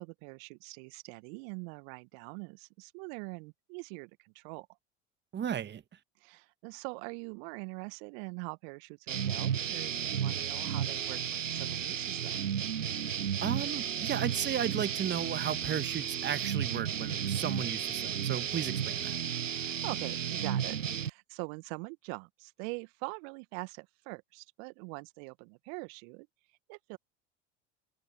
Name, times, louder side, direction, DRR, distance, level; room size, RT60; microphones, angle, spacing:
voice 1, 0.0-4.7 6.2-12.4 19.5-26.3 26.7-27.0, right 35 dB, 55° right, 1.5 m, -43 dB
voice 2, 5.3-5.8 13.4-19.2, right 9 dB, 30° right, 1.5 m, -34 dB
sound 1, 9.1-21.1, right 9 dB, 85° right, 0.7 m, -33 dB
figure-of-eight pair, 70°, 37 cm